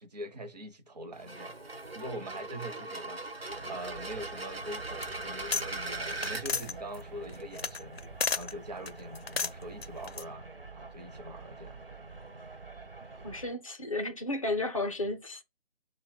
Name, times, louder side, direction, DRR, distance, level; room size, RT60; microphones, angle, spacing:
voice 1, 0.0-1.6 1.9-3.2 3.7-8.0 8.3-10.5 10.7-11.8, right 1 dB, 45° right, 0.6 m, -43 dB
sound 1, 1.1-6.4, right 2 dB, 90° right, 1.0 m, -39 dB
sound 2, 3.5-13.5, right 3 dB, 70° right, 1.1 m, -47 dB
sound 3, 4.6-5.7 5.9-8.5 8.8-10.2, left 5 dB, 90° left, 0.5 m, -33 dB
voice 2, 13.2-15.4, left 2 dB, 35° left, 0.5 m, -33 dB
5.6 x 2.1 x 4.2 m
figure-of-eight pair, 145°, 29 cm